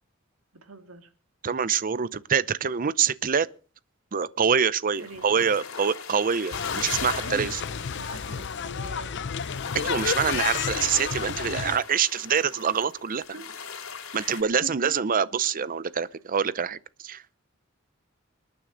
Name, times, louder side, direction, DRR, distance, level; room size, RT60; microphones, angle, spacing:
voice 1, 0.6-1.1 5.0-5.3 7.2-7.5 7.9-9.1 13.3-13.4 14.1-14.9, right 2 dB, 90° right, 2.2 m, -43 dB
voice 2, 1.4-3.5 4.1-7.6 9.7-13.2 14.1-16.8 17.0-17.4, right 7 dB, 40° right, 0.6 m, -25 dB
sound 1, 4.9-14.4, left 6 dB, 80° left, 3.2 m, -38 dB
sound 2, 6.5-11.8, left 6 dB, 60° left, 0.6 m, -31 dB
27.0 x 9.4 x 3.9 m
head